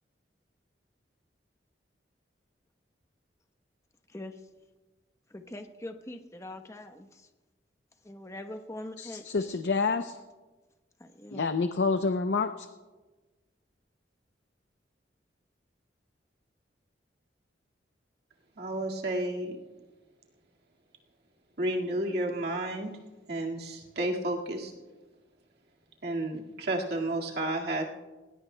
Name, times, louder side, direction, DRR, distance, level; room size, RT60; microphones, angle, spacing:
voice 1, 4.1-4.4 5.3-7.3 8.0-9.6 11.0-11.4, left 1 dB, 15° left, 6 dB, 0.9 m, -43 dB
voice 2, 9.0-10.2 11.3-12.7, left 4 dB, 70° left, 8 dB, 0.6 m, -28 dB
voice 3, 18.6-19.6 21.6-22.9 23.3-24.7 26.0-27.8, right 1 dB, 60° right, -1 dB, 1.9 m, -31 dB
20.5 x 19.5 x 2.2 m, 1.2 s
head